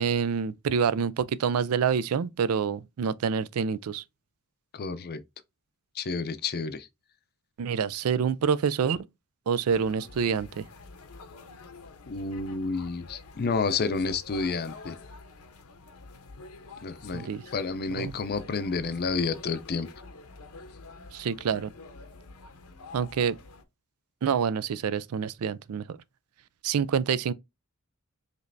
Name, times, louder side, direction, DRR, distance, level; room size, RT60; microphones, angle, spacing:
voice 1, 0.0-4.0 7.6-9.1 9.5-10.6 17.1-17.4 18.0-18.1 21.1-21.7 22.9-23.4 24.2-26.0 26.6-27.3, right 6 dB, 70° right, 0.4 m, -27 dB
voice 2, 4.7-5.2 6.0-6.9 12.1-15.0 16.8-17.3 17.5-19.9, left 4 dB, 45° left, 0.5 m, -30 dB
sound 1, 9.7-23.6, left 3 dB, 80° left, 0.9 m, -47 dB
5.1 x 3.2 x 2.6 m
head